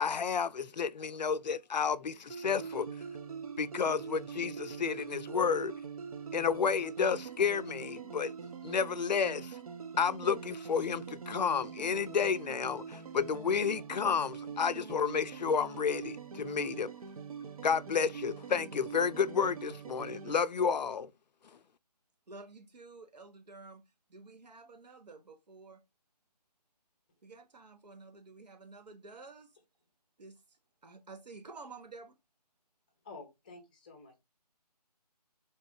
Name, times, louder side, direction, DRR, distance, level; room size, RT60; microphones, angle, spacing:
voice 1, 0.0-2.9 3.6-5.7 6.3-8.3 8.6-9.6 10.0-16.9 17.6-21.1, left 6 dB, 90° left, 0.4 m, -31 dB
sound 1, 2.3-20.4, right 6 dB, 60° right, 0.5 m, -43 dB
voice 2, 22.3-23.8 24.1-25.8 27.2-29.5 30.2-30.4 30.8-32.1, right 3 dB, 75° right, 1.0 m, -51 dB
voice 3, 33.0-34.2, left 3 dB, 10° left, 0.6 m, -50 dB
4.0 x 2.4 x 3.5 m
figure-of-eight pair, 160°, 21 cm